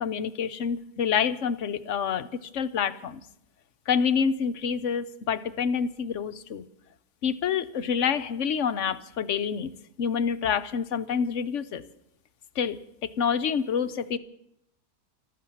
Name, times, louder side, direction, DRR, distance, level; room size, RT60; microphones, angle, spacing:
voice 1, 0.0-3.2 3.9-6.7 7.2-9.7 10.0-11.8 12.6-14.2, left 7 dB, 60° left, 13 dB, 1.0 m, -27 dB
14.5 x 13.5 x 7.1 m, 0.78 s
omnidirectional pair, 1.6 m